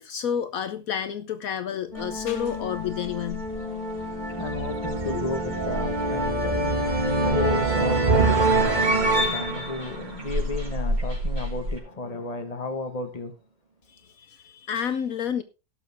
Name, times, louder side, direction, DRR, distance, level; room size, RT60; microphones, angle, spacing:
voice 1, 0.0-3.5 13.9-15.4, left 8 dB, 70° left, 1.2 m, -30 dB
Wind instrument woodwind instrument, 1.9-6.7, left 8 dB, 85° left, 2.0 m, -38 dB
sound 1, 1.9-11.0, right 2 dB, 30° right, 1.7 m, -25 dB
sound 2, 1.9-11.8, equal, 70° right, 5.4 m, -35 dB
voice 2, 4.4-6.5 7.2-13.3, left 3 dB, 25° left, 1.4 m, -33 dB
17.5 x 6.7 x 3.5 m
omnidirectional pair, 1.6 m